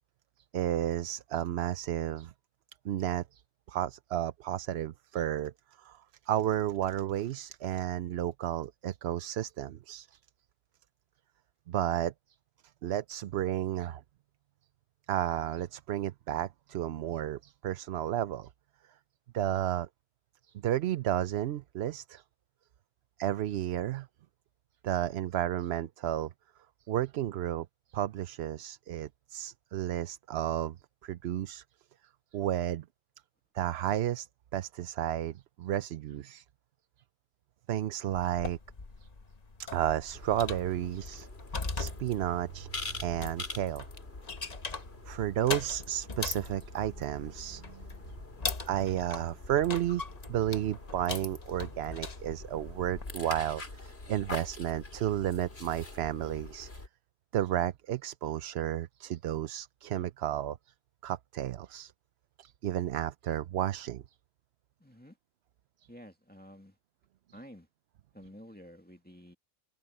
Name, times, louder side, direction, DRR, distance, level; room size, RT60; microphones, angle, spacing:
voice 1, 0.5-2.3 2.8-3.4 3.7-5.5 5.8-6.0 6.3-10.2 11.7-12.1 12.8-14.0 15.1-18.5 19.3-19.9 20.5-22.2 23.2-24.1 24.8-26.3 26.9-30.8 31.0-31.6 32.3-32.8 33.5-34.3 34.5-36.4 37.7-38.6 39.6-41.3 41.8-43.9 45.1-47.9 48.6-56.7 57.3-60.6 61.0-61.9 62.4-64.0, right 12 dB, 85° right, 0.9 m, -32 dB
sound 1, 38.1-53.2, left 4 dB, 40° left, 1.2 m, -41 dB
sound 2, 40.1-56.9, left 2 dB, 80° left, 3.2 m, -45 dB
voice 2, 64.8-65.2 65.9-66.8 67.3-67.7 68.1-69.4, equal, 10° left, 2.1 m, -51 dB
open air
omnidirectional pair, 1.0 m